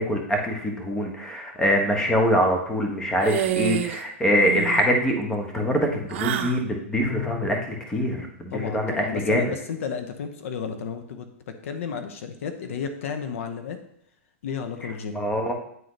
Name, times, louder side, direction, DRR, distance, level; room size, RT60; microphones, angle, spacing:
voice 1, 0.0-9.5 15.1-15.5, equal, 10° left, 2 dB, 1.1 m, -24 dB
sound 1, 3.2-4.0 4.3-4.9 6.1-6.6, right 12 dB, 55° right, 0.6 m, -28 dB
Bowed string instrument, 7.0-7.9, left 8 dB, 50° left, 2.2 m, -34 dB
voice 2, 8.5-13.8 14.4-15.2, left 6 dB, 75° left, 7 dB, 0.8 m, -32 dB
9.2 x 3.9 x 3.3 m, 0.71 s
hypercardioid pair, 130°, 7 cm